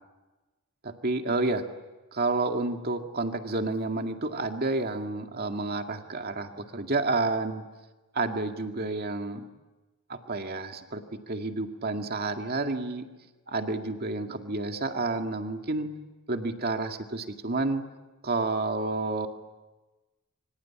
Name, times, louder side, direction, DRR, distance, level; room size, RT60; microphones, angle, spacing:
voice 1, 0.8-1.6 2.1-7.6 8.1-9.4 10.1-13.1 13.5-15.9 16.3-17.8 18.2-19.3, right 2 dB, 50° right, 5 dB, 2.1 m, -30 dB
26.5 x 25.0 x 8.7 m, 1.2 s
head